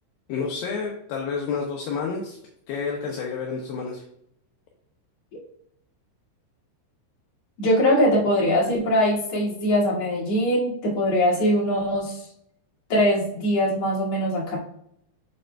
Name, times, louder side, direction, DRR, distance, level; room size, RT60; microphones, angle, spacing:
voice 1, 0.3-2.4 2.7-4.0, left 5 dB, 75° left, -1 dB, 2.2 m, -29 dB
voice 2, 7.6-12.3 12.9-14.6, equal, 45° left, -5 dB, 2.8 m, -22 dB
7.5 x 6.4 x 2.3 m, 0.72 s
omnidirectional pair, 4.9 m